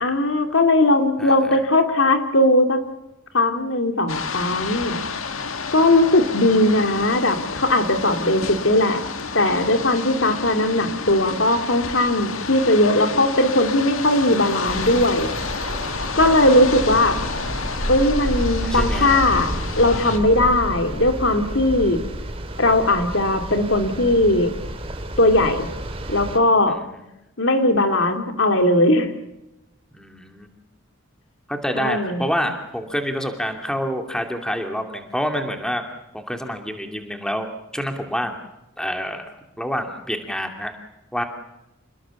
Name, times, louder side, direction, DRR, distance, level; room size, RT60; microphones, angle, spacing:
voice 1, 0.0-2.8 3.3-5.0 5.7-9.0 9.3-15.3 16.2-17.2 17.9-22.0 22.6-24.5 25.2-25.7 26.1-26.8 27.4-29.1 31.8-32.3, left 1 dB, 65° left, 6 dB, 2.6 m, -19 dB
voice 2, 1.2-1.5 18.6-19.3 26.7-26.9 29.9-30.5 31.5-35.8 36.1-37.5 37.7-38.3 38.8-39.3 39.6-40.7 41.1-41.2, equal, 5° left, 4 dB, 2.5 m, -27 dB
sound 1, 4.1-20.2, left 5 dB, 85° left, 1.8 m, -30 dB
sound 2, 14.7-26.4, right 1 dB, 25° right, 2.7 m, -30 dB
28.0 x 20.5 x 7.1 m, 0.90 s
head